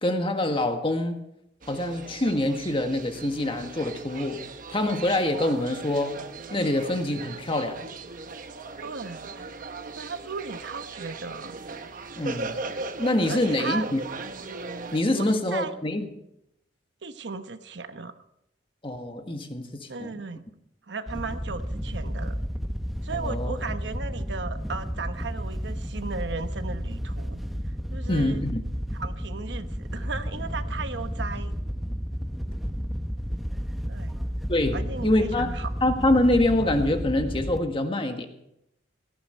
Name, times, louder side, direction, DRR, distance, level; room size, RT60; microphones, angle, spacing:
voice 1, 0.0-1.2 1.7-4.4 4.7-6.2 6.5-7.8 12.2-12.6 13.0-14.0 14.9-16.1 18.8-20.2 23.1-23.6 28.1-28.6 34.5-35.5 35.8-38.3, left 1 dB, 30° left, 6 dB, 1.6 m, -25 dB
sound 1, 1.6-15.0, right 3 dB, 50° right, 1.1 m, -38 dB
voice 2, 8.8-9.5 9.9-11.6 13.3-13.9 15.1-15.7 17.0-18.1 19.9-20.4 20.9-22.4 23.0-27.4 27.9-28.4 28.9-31.6 33.9-34.2 34.7-35.7, right 4 dB, 75° right, 10 dB, 1.0 m, -36 dB
Wind / Boat Water vehicle, 21.1-37.6, equal, ahead, 0.9 m, -32 dB
17.0 x 14.5 x 4.4 m, 0.81 s
head